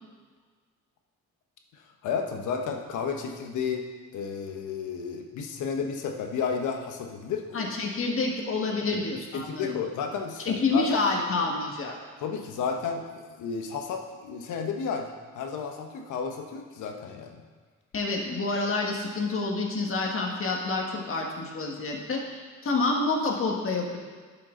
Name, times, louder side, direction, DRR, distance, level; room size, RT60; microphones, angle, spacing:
voice 1, 2.0-3.9 4.1-7.6 8.8-9.0 9.3-11.0 12.2-15.1 15.3-17.4, left 6 dB, 80° left, 3 dB, 1.1 m, -32 dB
voice 2, 7.5-9.8 10.4-11.9 17.9-24.0, left 3 dB, 45° left, 0 dB, 1.7 m, -28 dB
11.0 x 5.8 x 3.9 m, 1.5 s
cardioid pair, 90°, 30 cm